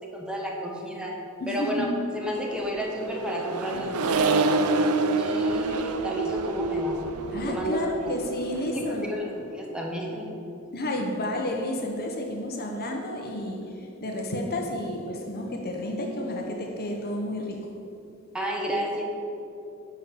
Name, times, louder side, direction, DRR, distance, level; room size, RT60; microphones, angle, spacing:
voice 1, 0.1-1.1 1.5-1.9 2.1-4.4 5.2-7.1 7.4-8.1 8.6-9.2 9.5-10.3 18.3-19.0, equal, 5° right, -2 dB, 1.2 m, -32 dB
voice 2, 1.4-1.9 7.3-9.1 10.7-17.7, left 1 dB, 45° left, 2 dB, 0.9 m, -31 dB
Accelerating revving vroom, 2.5-9.2, right 3 dB, 90° right, 0.6 m, -27 dB
10.0 x 4.3 x 6.9 m, 2.7 s
head